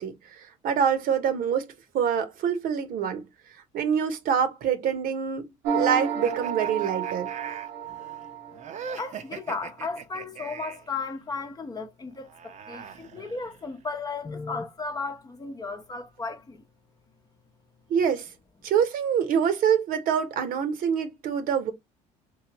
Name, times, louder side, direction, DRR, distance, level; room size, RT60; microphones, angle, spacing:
voice 1, 0.0-3.2 3.7-7.3 17.9-18.3 18.6-21.7, right 7 dB, 65° right, 1.1 m, -26 dB
sound 1, 5.6-9.0, right 7 dB, 85° right, 1.1 m, -31 dB
sound 2, 6.2-10.9 12.1-13.8, right 7 dB, 50° right, 0.8 m, -41 dB
voice 2, 9.0-16.6, left 4 dB, 25° left, 0.8 m, -35 dB
3.2 x 3.1 x 3.0 m
supercardioid pair, 90°, 16 cm